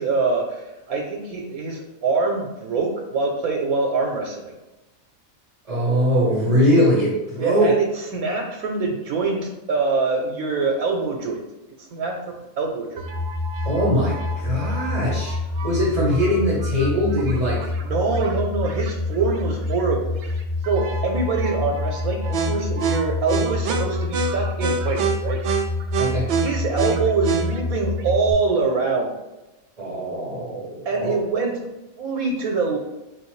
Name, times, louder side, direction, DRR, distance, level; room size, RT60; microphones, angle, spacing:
voice 1, 0.0-4.5 7.4-7.9 8.1-11.4 11.8-12.1 12.6-13.0 17.8-20.4 20.6-25.4 26.4-29.1 30.8-31.6 32.0-32.8, right 4 dB, 85° right, 0 dB, 1.1 m, -24 dB
voice 2, 5.7-7.8 13.6-15.4 15.6-17.7 26.0-26.3 29.8-31.2, equal, 30° right, -5 dB, 0.8 m, -21 dB
sound 1, 13.0-28.3, equal, 65° right, 0.6 m, -26 dB
4.5 x 3.2 x 3.1 m, 1.0 s
omnidirectional pair, 1.5 m